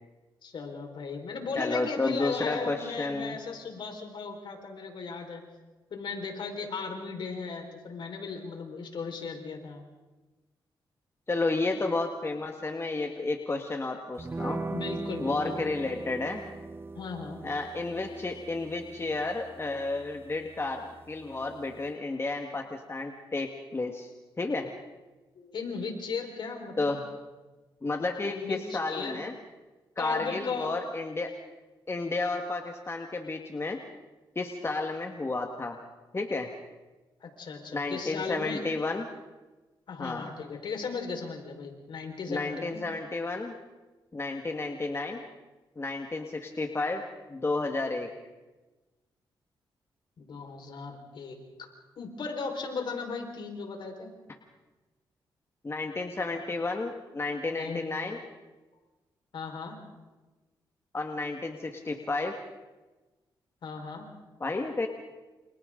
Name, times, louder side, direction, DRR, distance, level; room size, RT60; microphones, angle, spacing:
voice 1, 0.4-5.4 5.9-9.8 14.7-15.7 16.9-17.4 25.3-26.9 28.2-29.2 30.0-30.8 37.2-38.7 39.9-42.8 50.2-51.7 52.0-54.1 57.5-57.8 59.3-59.7 63.6-64.0, left 4 dB, 65° left, 2 dB, 4.9 m, -36 dB
voice 2, 1.5-3.4 11.3-14.6 15.2-16.4 17.4-24.1 24.4-24.7 26.8-27.0 27.8-29.3 30.0-31.3 31.9-33.8 34.3-35.8 36.1-36.5 37.7-39.1 40.0-40.3 42.3-43.5 44.1-45.2 45.8-47.0 47.3-48.1 55.6-58.2 60.9-62.3 64.4-64.9, left 3 dB, 30° left, 3 dB, 1.8 m, -32 dB
sound 1, 14.2-21.9, right 3 dB, 25° right, 0.8 m, -41 dB
29.0 x 27.5 x 3.9 m, 1.2 s
cardioid pair, 75°, 9 cm